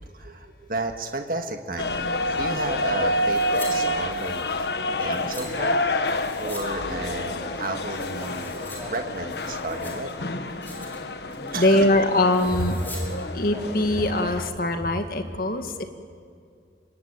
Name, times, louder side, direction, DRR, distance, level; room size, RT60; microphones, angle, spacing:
voice 1, 0.0-5.8 6.1-10.1 11.5-11.9, right 2 dB, 55° right, 5 dB, 1.8 m, -33 dB
sound 1, 1.8-14.5, left 1 dB, 70° left, 1.4 m, -28 dB
sound 2, 3.3-3.7 4.0-5.5 6.0-6.7 6.9-7.0 7.5-8.8 9.1-10.1 10.5-11.0 11.3-11.6 12.3-13.0 13.3-13.4, left 2 dB, 10° left, 5.8 m, -43 dB
sound 3, 4.9-14.5, equal, 5° right, 2.9 m, -44 dB
voice 2, 11.6-12.8 13.3-15.8, left 1 dB, 55° left, 6 dB, 2.0 m, -22 dB
27.0 x 24.0 x 8.9 m, 2.4 s
head